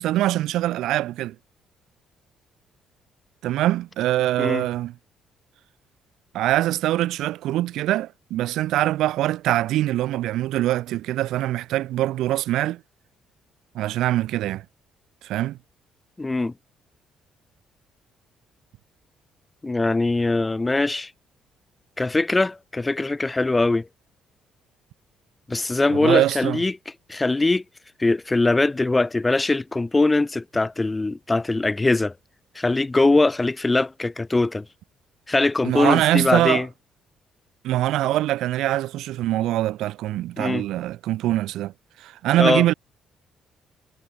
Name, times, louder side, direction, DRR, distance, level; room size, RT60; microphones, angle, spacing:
voice 1, 0.0-1.3 3.4-4.9 6.3-12.8 13.7-14.6 15.2-15.6 25.9-26.6 35.6-36.6 37.6-41.7 42.0-42.7, right 14 dB, 80° right, 6.9 m, -23 dB
voice 2, 16.2-16.5 19.6-21.1 22.0-23.9 25.5-26.8 27.1-27.6 28.0-32.1 32.5-34.6 35.3-36.7 40.4-40.6 42.4-42.6, left 2 dB, 15° left, 6.1 m, -21 dB
cardioid pair, 95°, 0 cm